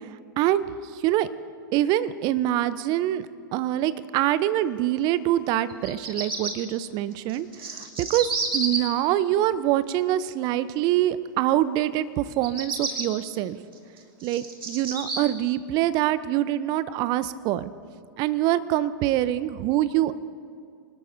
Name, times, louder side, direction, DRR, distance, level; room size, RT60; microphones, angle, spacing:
voice 1, 1.7-3.3 3.5-13.6 14.2-17.7 18.2-20.2, right 13 dB, 35° right, 15 dB, 0.7 m, -25 dB
Bird vocalization bird call bird song, 5.7-6.5 7.3-8.8 12.3-13.0 13.7-15.2, right 4 dB, 80° right, 2.6 m, -30 dB
25.0 x 19.5 x 2.7 m, 2.3 s
figure-of-eight pair, 100°, 12 cm